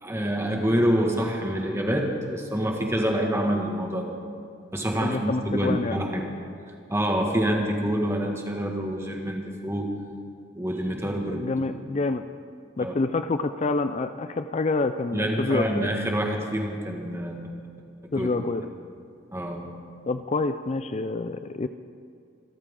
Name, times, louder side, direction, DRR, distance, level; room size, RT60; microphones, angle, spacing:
voice 1, 0.0-4.1 4.7-6.3 6.9-9.9 10.6-11.5 11.9-12.0 12.8-12.9 15.1-17.5 18.1-18.3 19.3-19.8, equal, 15° right, 1 dB, 1.8 m, -26 dB
voice 2, 5.0-6.0 11.3-12.2 12.8-15.9 18.1-18.6 20.1-21.7, left 3 dB, 35° left, 10 dB, 0.4 m, -27 dB
26.5 x 13.0 x 3.8 m, 2.4 s
head